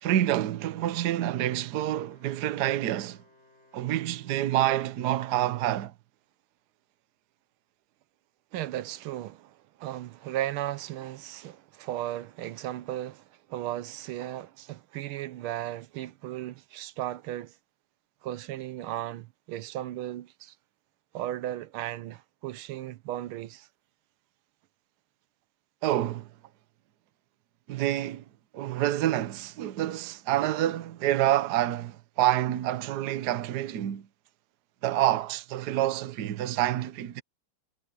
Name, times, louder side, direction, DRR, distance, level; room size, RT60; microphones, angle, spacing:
voice 1, 0.0-3.2 3.7-5.9 25.8-26.3 27.7-28.2 28.5-34.1 34.8-37.2, right 13 dB, 60° right, 1.3 m, -27 dB
Wind instrument woodwind instrument, 1.6-5.4, left 2 dB, 30° left, 8.3 m, -62 dB
voice 2, 8.5-17.6 18.2-20.5 21.1-23.7 26.0-26.1, right 13 dB, 85° right, 1.6 m, -36 dB
omnidirectional pair, 2.3 m